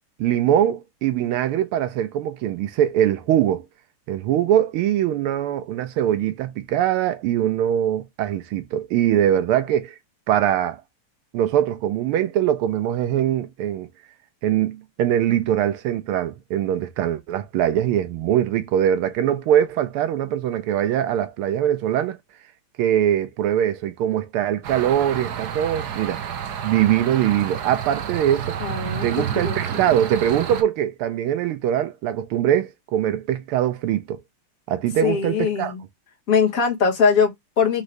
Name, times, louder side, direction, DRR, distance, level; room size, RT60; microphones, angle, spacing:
voice 1, 0.2-3.6 4.1-9.9 10.3-10.8 11.3-13.9 14.4-22.2 22.8-26.2 26.6-28.6 29.0-34.2 34.7-35.7, right 11 dB, 80° right, 1.6 m, -22 dB
sound 1, 24.6-30.6, right 8 dB, 65° right, 1.0 m, -30 dB
voice 2, 28.6-29.1 29.3-29.8 35.0-35.8 36.3-37.8, left 6 dB, 45° left, 1.5 m, -21 dB
5.0 x 2.7 x 3.2 m
omnidirectional pair, 2.4 m